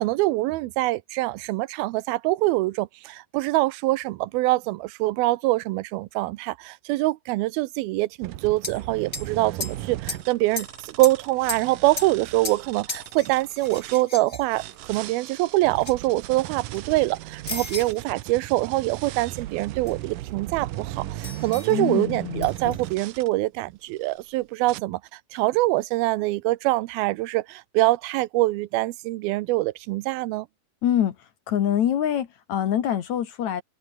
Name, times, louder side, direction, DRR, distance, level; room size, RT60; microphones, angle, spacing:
voice 1, 0.0-30.5, right 19 dB, 85° right, 2.5 m, -24 dB
sound 1, 8.2-14.0 14.5-23.3 23.9-24.3 24.7-24.8, right 15 dB, 70° right, 2.4 m, -37 dB
sound 2, 8.6-8.8 9.1-9.3 9.6-10.2 10.6-11.2 11.5-12.6 12.9-15.1 15.7-15.9 16.3-17.0 17.5-18.0 19.9-20.0 21.2-21.8 22.4-22.8, left 3 dB, 20° left, 2.4 m, -35 dB
voice 2, 21.7-22.7 30.8-31.2 31.5-33.6, left 10 dB, 60° left, 2.4 m, -25 dB
open air
omnidirectional pair, 4.3 m